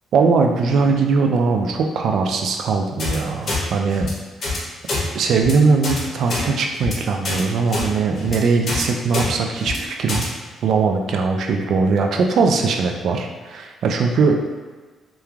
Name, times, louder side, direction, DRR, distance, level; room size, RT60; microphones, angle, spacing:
voice 1, 0.1-4.1 5.1-10.2 10.6-14.4, right 4 dB, 70° right, 3 dB, 0.3 m, -20 dB
sound 1, 3.0-3.2 3.5-3.6 3.9-4.1 4.4-4.6 4.9-5.0 5.3-5.5 5.8-6.0 6.3-6.4 6.8-6.9 7.2-7.4 7.7-7.9 8.2-8.4 8.7-8.8 9.1-9.3 9.6-9.8 10.1-10.3, left 2 dB, 55° left, 0.7 m, -25 dB
3.0 x 2.2 x 2.3 m, 1.4 s
cardioid pair, 90°, 0 cm